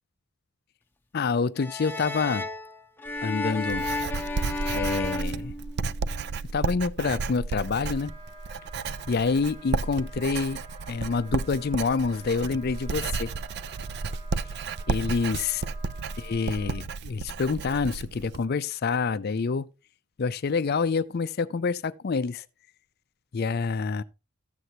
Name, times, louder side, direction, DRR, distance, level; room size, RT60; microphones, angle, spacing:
voice 1, 1.1-2.5 3.2-3.9 4.7-5.5 6.5-8.1 9.1-10.6 10.9-13.3 14.9-15.6 16.2-19.7 20.2-22.4 23.3-24.0, left 4 dB, 50° left, 0.4 m, -27 dB
sound 1, 1.6-6.2, left 2 dB, 10° left, 0.7 m, -33 dB
Writing, 3.1-18.4, right 4 dB, 50° right, 0.4 m, -33 dB
Wind instrument woodwind instrument, 7.6-16.9, right 1 dB, 20° right, 3.0 m, -50 dB
13.5 x 7.9 x 2.8 m
head